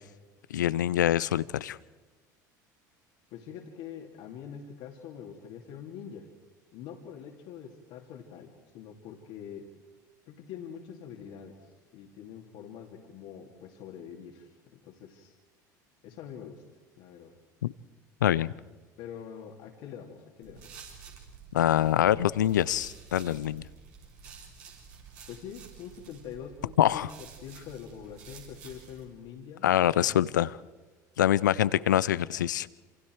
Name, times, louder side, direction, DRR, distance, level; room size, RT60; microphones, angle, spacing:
voice 1, 0.5-1.8 17.6-17.7 18.2-18.5 21.5-23.6 26.8-27.1 29.6-30.5 31.2-32.7, left 11 dB, 85° left, 20 dB, 0.6 m, -25 dB
voice 2, 3.3-6.3 6.7-9.7 10.3-15.3 16.0-16.6 17.0-17.3 19.0-20.8 23.7-23.8 25.3-30.2, left 8 dB, 65° left, 1 dB, 2.9 m, -45 dB
sound 1, 20.4-29.0, right 6 dB, 70° right, 6.4 m, -50 dB
28.0 x 27.5 x 4.7 m, 1.2 s
hypercardioid pair, 70°, 10 cm